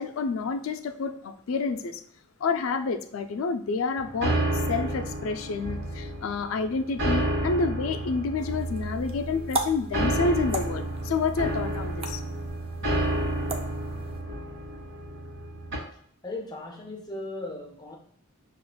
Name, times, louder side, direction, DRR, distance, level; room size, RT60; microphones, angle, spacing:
voice 1, 0.0-2.0 2.4-12.2, left 4 dB, 75° left, 8 dB, 0.4 m, -29 dB
sound 1, 4.0-15.8, right 1 dB, 60° right, 1.1 m, -30 dB
sound 2, 8.4-14.2, right 2 dB, 25° right, 0.4 m, -37 dB
voice 2, 15.9-18.0, left 2 dB, 20° left, 1 dB, 0.5 m, -37 dB
6.3 x 2.4 x 2.2 m, 0.63 s
head